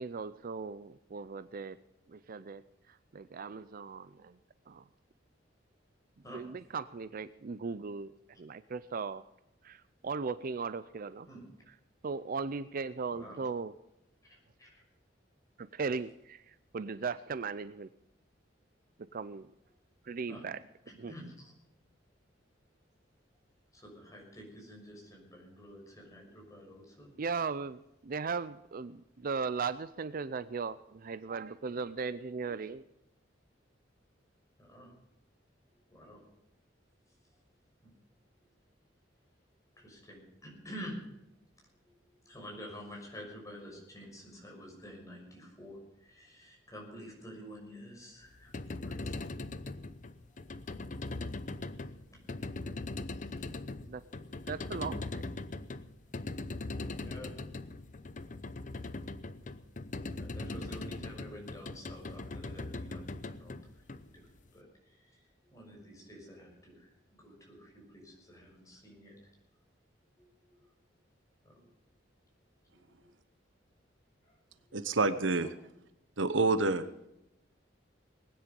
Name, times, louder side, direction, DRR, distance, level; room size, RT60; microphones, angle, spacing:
voice 1, 0.0-1.8 2.1-4.4 4.7-4.8 6.3-8.1 8.4-9.2 9.6-11.3 12.0-13.7 15.6-17.9 19.1-19.5 20.0-20.6 21.0-21.1 27.2-32.8 53.9-54.0 54.5-55.3, right 5 dB, 50° right, 15 dB, 0.5 m, -38 dB
voice 2, 14.3-14.8 20.3-20.4 20.9-21.5 23.7-27.1 34.6-34.9 35.9-36.2 39.8-41.0 41.8-41.9 42.2-48.5 48.8-49.1 53.1-53.5 56.9-57.4 60.2-63.8 64.1-64.3 64.5-65.2 65.5-66.9 67.2-69.2 70.2-70.3 70.6-70.7 71.4-71.7 72.7-73.1 74.3-74.4 75.4-75.5, equal, 20° left, -1 dB, 6.2 m, -49 dB
sound 1, 48.3-64.5, left 2 dB, 45° left, 0.8 m, -40 dB
voice 3, 74.7-75.5 76.2-76.8, right 3 dB, 80° right, 12 dB, 1.0 m, -27 dB
20.0 x 10.0 x 5.3 m, 0.86 s
head